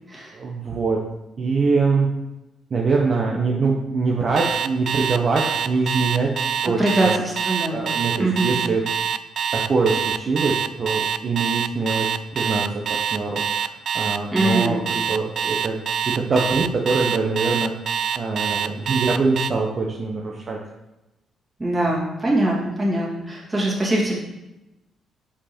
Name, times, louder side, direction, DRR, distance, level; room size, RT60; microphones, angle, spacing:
voice 1, 0.3-1.0 1.4-2.1 2.7-6.3 6.6-7.1 7.7-8.8 9.5-12.7 13.1-15.8 16.1-17.7 18.2-20.6, right 4 dB, 45° right, -1 dB, 0.8 m, -23 dB
Alarm, 4.4-19.5, right 8 dB, 60° right, 0.3 m, -25 dB
voice 2, 6.8-7.9 8.2-8.6 14.3-14.8 21.6-24.2, right 1 dB, 20° right, -4 dB, 2.1 m, -22 dB
5.2 x 4.9 x 4.4 m, 0.98 s
cardioid pair, 90°, 0 cm